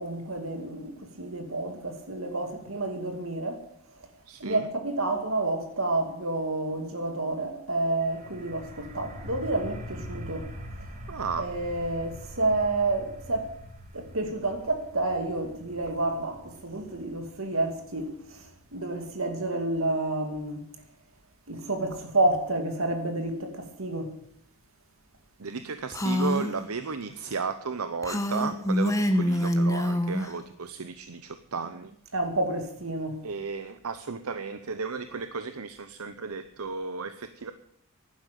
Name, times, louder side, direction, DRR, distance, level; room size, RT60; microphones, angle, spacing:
voice 1, 0.0-3.6 4.4-10.5 11.4-13.5 13.9-20.6 21.5-24.1 32.1-33.2, right 2 dB, 70° right, 2.4 m, -29 dB
voice 2, 4.3-4.7 11.1-11.5 25.4-31.9 33.2-37.5, right 4 dB, 90° right, 0.8 m, -34 dB
sound 1, 8.0-19.5, equal, 35° right, 2.2 m, -44 dB
Female speech woman speaking, 25.9-26.5 28.0-30.3, equal, 15° left, 1.1 m, -25 dB
11.5 x 10.0 x 9.3 m
head